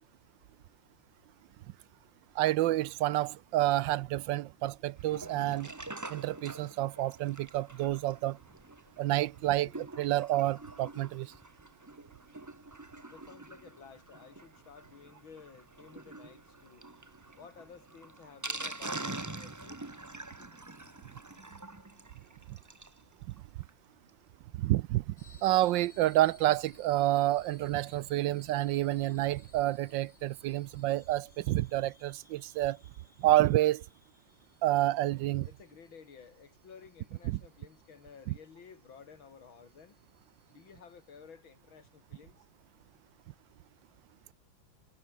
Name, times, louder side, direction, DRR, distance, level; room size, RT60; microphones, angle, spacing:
voice 1, 2.4-5.7 6.1-8.4 9.0-9.7 10.0-11.3 22.5-22.6 24.6-25.1 25.4-32.8 33.2-33.8 34.6-35.5 37.3-37.4, right 15 dB, 75° right, 1.2 m, -29 dB
Sink (filling or washing), 5.0-23.0 23.4-23.5 23.6-23.7 24.1-24.2, right 2 dB, 15° right, 0.6 m, -45 dB
sound 1, 10.1-18.1, right 2 dB, 60° right, 7.6 m, -71 dB
voice 2, 13.1-16.9 17.4-19.8 20.4-20.5 35.4-40.0 40.5-42.5, left 6 dB, 80° left, 3.1 m, -54 dB
sound 2, 25.2-41.2, left 3 dB, 35° left, 3.6 m, -61 dB
omnidirectional pair, 2.2 m